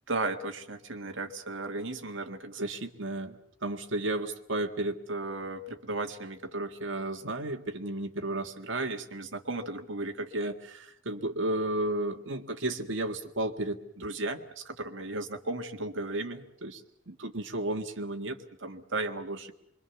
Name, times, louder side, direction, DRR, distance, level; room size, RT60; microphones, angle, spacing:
voice 1, 0.1-16.8 17.1-19.5, right 2 dB, 75° right, 5 dB, 1.9 m, -34 dB
25.5 x 23.0 x 7.1 m, 0.72 s
head